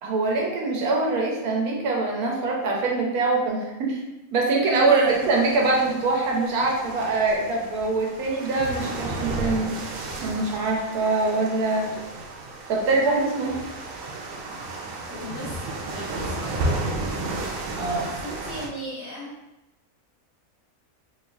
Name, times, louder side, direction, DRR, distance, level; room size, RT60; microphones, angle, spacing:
voice 1, 0.0-4.0 4.3-9.8 10.2-11.9 12.7-13.6 17.8-18.1, right 3 dB, 85° right, -1 dB, 1.3 m, -23 dB
sound 1, 5.1-18.7, right 2 dB, 70° right, 0.9 m, -33 dB
voice 2, 15.0-16.5 18.2-19.4, equal, 45° left, -11 dB, 1.8 m, -37 dB
4.4 x 2.7 x 2.3 m, 0.96 s
omnidirectional pair, 1.5 m